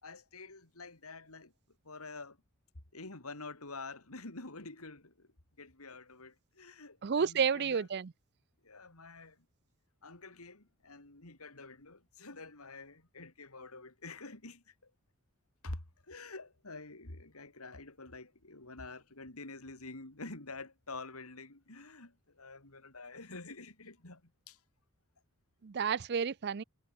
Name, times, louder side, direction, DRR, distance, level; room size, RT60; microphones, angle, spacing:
voice 1, 0.0-1.5 1.8-2.4 2.9-5.3 5.6-7.9 8.6-9.4 10.0-14.9 15.6-24.6, left 3 dB, 85° left, 3.5 m, -48 dB
voice 2, 7.0-8.1 25.6-26.6, right 6 dB, 50° right, 0.5 m, -31 dB
head